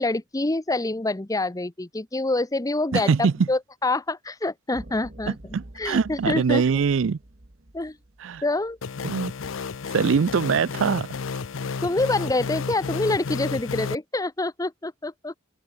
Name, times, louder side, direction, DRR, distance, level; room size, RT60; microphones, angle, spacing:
voice 1, 0.0-5.4 5.8-6.6 7.7-8.0 8.4-8.8 11.8-15.3, left 2 dB, 20° left, 0.8 m, -26 dB
voice 2, 2.9-3.5 5.5-7.2 8.2-8.4 9.0-9.3 9.9-11.1, right 5 dB, 70° right, 0.4 m, -22 dB
sound 1, 4.7-9.1, right 1 dB, 45° right, 1.7 m, -46 dB
sound 2, 8.8-13.9, left 5 dB, 75° left, 0.6 m, -32 dB
head